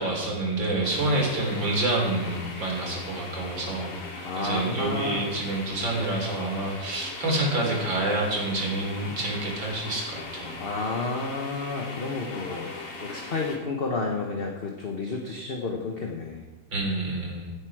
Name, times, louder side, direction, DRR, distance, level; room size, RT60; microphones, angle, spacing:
voice 1, 0.0-10.5 16.7-17.5, right 2 dB, 85° right, 0 dB, 4.1 m, -28 dB
sound 1, 0.8-13.6, left 3 dB, 85° left, 2.8 m, -39 dB
voice 2, 4.2-5.4 10.6-12.7 13.0-16.4, left 3 dB, 35° left, 1 dB, 1.2 m, -31 dB
16.0 x 8.3 x 4.9 m, 1.2 s
omnidirectional pair, 2.0 m